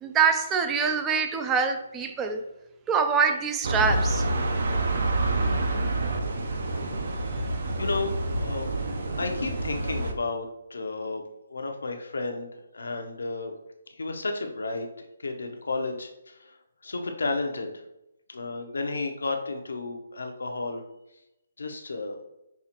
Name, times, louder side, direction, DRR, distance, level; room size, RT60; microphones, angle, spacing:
voice 1, 0.0-2.4 2.9-4.2, right 6 dB, 10° right, 6 dB, 0.3 m, -24 dB
sound 1, 3.6-10.1, right 2 dB, 55° right, 0.6 m, -27 dB
voice 2, 7.8-8.7 9.2-11.2 11.5-13.5 14.0-14.9 15.2-16.5 16.8-17.7 18.3-20.8 21.6-22.2, left 3 dB, 85° left, 4 dB, 0.6 m, -32 dB
5.6 x 2.4 x 2.8 m, 0.88 s
hypercardioid pair, 165°, 0 cm